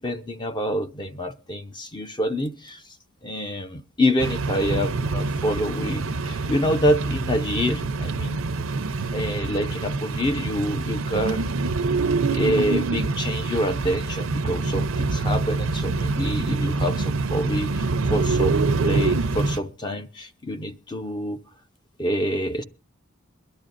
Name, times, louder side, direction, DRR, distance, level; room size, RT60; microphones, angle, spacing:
voice 1, 0.0-2.8 3.2-8.4 9.1-11.5 12.3-21.4 22.0-22.6, equal, 20° left, 0.6 m, -27 dB
sound 1, 4.2-19.6, right 3 dB, 90° right, 0.6 m, -25 dB
22.5 x 12.0 x 2.5 m
head